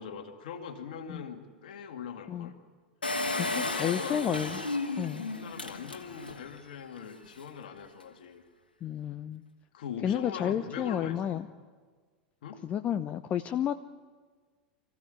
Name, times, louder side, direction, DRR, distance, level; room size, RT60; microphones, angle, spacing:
voice 1, 0.0-2.5 3.2-4.2 5.3-8.4 9.7-11.4 12.4-12.6, left 7 dB, 60° left, 5 dB, 2.3 m, -41 dB
Engine, 3.0-6.5 7.0-7.1 7.2-7.3, left 2 dB, 80° left, 1.9 m, -33 dB
voice 2, 3.3-4.6 5.0-5.3 8.8-9.4 10.0-11.5 12.6-13.7, left 9 dB, 30° left, 10 dB, 0.7 m, -31 dB
25.5 x 15.5 x 9.6 m, 1.5 s
figure-of-eight pair, 90°, 5 cm